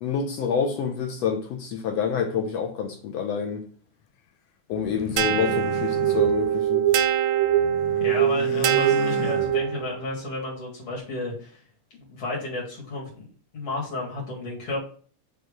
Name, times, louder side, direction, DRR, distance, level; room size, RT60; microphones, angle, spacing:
voice 1, 0.0-3.6 4.7-6.8, left 6 dB, 70° left, 1.6 m, -27 dB
sound 1, 4.7-7.1 7.4-10.0, left 8 dB, 90° left, 1.3 m, -36 dB
sound 2, 5.2-9.9, right 10 dB, 80° right, 1.7 m, -22 dB
voice 2, 8.0-11.6 12.0-13.3 13.5-14.8, left 2 dB, 55° left, 3.0 m, -32 dB
6.1 x 3.5 x 5.1 m
omnidirectional pair, 3.5 m